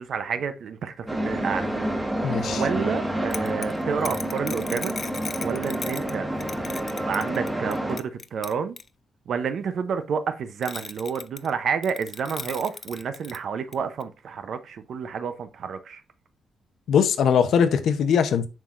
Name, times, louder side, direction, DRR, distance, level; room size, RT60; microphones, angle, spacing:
voice 1, 0.0-1.7 2.5-4.9 5.4-6.3 7.1-8.8 9.3-16.0, right 6 dB, 55° right, 0.6 m, -29 dB
sound 1, 1.1-8.0, right 1 dB, 10° right, 1.3 m, -29 dB
voice 2, 2.2-2.6 16.9-18.5, left 7 dB, 65° left, 0.8 m, -21 dB
sound 2, 3.3-6.1 6.4-8.9 10.6-11.5 11.8-13.4 13.7-13.8 14.0-14.1, left 4 dB, 30° left, 0.4 m, -37 dB
7.4 x 5.7 x 2.5 m
cardioid pair, 155°, 0 cm